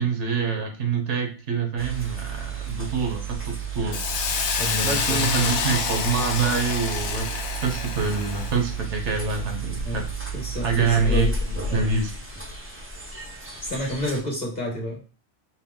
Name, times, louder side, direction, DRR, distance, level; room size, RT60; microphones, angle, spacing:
voice 1, 0.0-4.0 4.8-10.0 10.6-11.3 11.7-12.1, right 5 dB, 75° right, 5 dB, 1.1 m, -26 dB
sound 1, 1.8-14.2, right 3 dB, 20° right, 0.4 m, -32 dB
Hiss, 3.9-8.6, left 6 dB, 75° left, 0.9 m, -28 dB
voice 2, 4.5-5.5 9.8-10.0 10.3-11.9 13.6-15.0, equal, 40° left, -1 dB, 1.3 m, -30 dB
4.5 x 2.0 x 3.5 m, 0.36 s
omnidirectional pair, 1.2 m